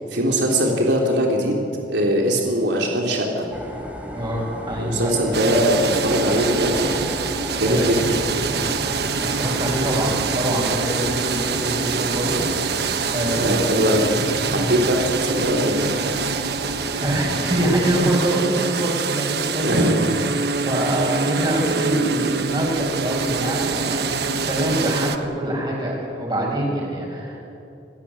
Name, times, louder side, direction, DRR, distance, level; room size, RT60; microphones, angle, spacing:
voice 1, 0.1-3.5 4.8-6.9 7.6-8.2 13.3-14.1 14.4-15.8 19.6-20.1 20.8-20.9, equal, 90° right, 0 dB, 3.4 m, -21 dB
sound 1, 3.5-17.9, equal, 10° right, 3.4 m, -34 dB
voice 2, 4.1-5.1 7.5-8.1 9.2-14.0 14.5-14.7 17.0-27.4, right 1 dB, 25° right, -2 dB, 7.4 m, -25 dB
sound 2, 5.3-25.2, right 5 dB, 65° right, 1.3 m, -25 dB
27.5 x 15.5 x 9.8 m, 2.8 s
head